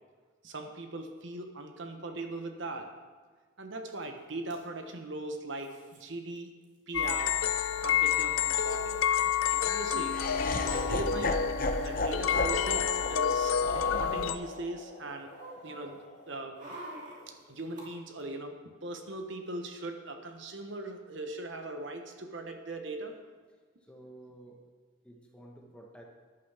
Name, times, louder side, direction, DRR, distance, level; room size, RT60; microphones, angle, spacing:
voice 1, 0.4-2.9 3.6-6.5 6.9-7.4 7.7-9.0 9.5-10.2 10.7-15.3 15.6-16.7 17.3-18.6 18.8-23.2, right 2 dB, 60° right, 5 dB, 1.1 m, -40 dB
sound 1, 4.0-4.1 4.3-4.6 5.6-6.0 6.4-6.5 6.6-7.2 8.1-8.2 8.4-8.6 10.2-11.3 11.9-12.3 12.9-14.6 14.9-17.8 18.2-18.3, right 1 dB, 35° right, 2.7 m, -49 dB
sound 2, 6.9-14.4, left 9 dB, 75° left, 0.5 m, -29 dB
Laughter, 10.1-16.2, left 2 dB, 40° left, 0.9 m, -34 dB
voice 2, 23.9-24.6 25.0-26.1, right 1 dB, 5° left, 0 dB, 1.2 m, -51 dB
13.5 x 11.0 x 3.5 m, 1.5 s
head